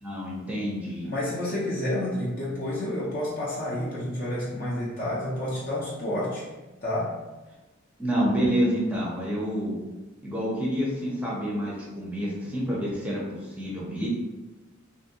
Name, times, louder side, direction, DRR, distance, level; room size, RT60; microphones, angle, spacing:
voice 1, 0.0-1.1 8.0-9.7 10.2-14.1, equal, 5° right, -5 dB, 0.5 m, -28 dB
voice 2, 1.0-6.4 6.8-7.1, left 1 dB, 45° left, -6 dB, 0.5 m, -29 dB
2.6 x 2.6 x 2.7 m, 1.1 s
head